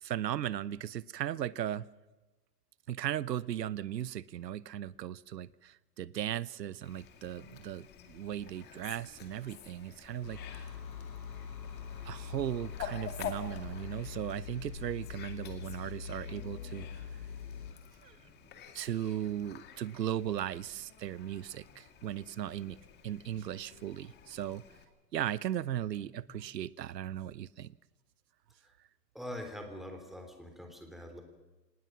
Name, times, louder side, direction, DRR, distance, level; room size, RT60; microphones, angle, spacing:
voice 1, 0.0-1.9 2.9-10.7 12.0-17.0 18.0-18.2 18.7-22.8 23.0-24.6 25.1-27.7, right 11 dB, 75° right, 20 dB, 0.9 m, -37 dB
Fowl, 6.8-24.8, left 8 dB, 20° left, 2.2 m, -49 dB
sound 1, 10.2-17.8, left 7 dB, 80° left, 6.5 m, -43 dB
voice 2, 29.1-31.2, left 1 dB, ahead, 4 dB, 3.1 m, -44 dB
26.0 x 19.0 x 6.0 m, 1.1 s
hypercardioid pair, 140°, 50 cm